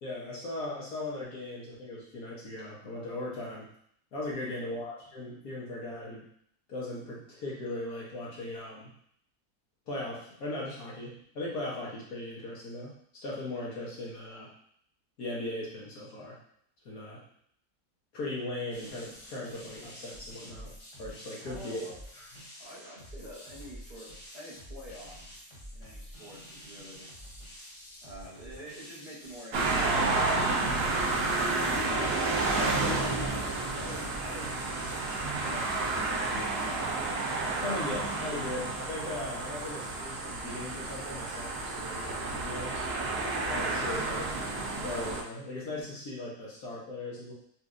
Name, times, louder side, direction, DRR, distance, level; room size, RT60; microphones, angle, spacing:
voice 1, 0.0-3.7 4.1-6.3 6.7-8.9 9.9-13.0 13.2-14.5 15.2-16.4 16.8-17.2 18.1-20.7 21.0-21.8 37.6-42.9 43.5-44.4 44.8-47.3, left 2 dB, 70° left, -5 dB, 1.3 m, -38 dB
voice 2, 4.4-4.8 21.4-22.0 22.6-25.3 25.7-27.1 28.0-31.7 32.8-34.5, equal, 30° right, -11 dB, 0.9 m, -48 dB
sound 1, 18.7-35.2, equal, 25° left, 0.8 m, -48 dB
sound 2, 29.5-45.2, right 3 dB, 70° right, 0.5 m, -31 dB
4.2 x 2.5 x 2.4 m, 0.67 s
omnidirectional pair, 1.7 m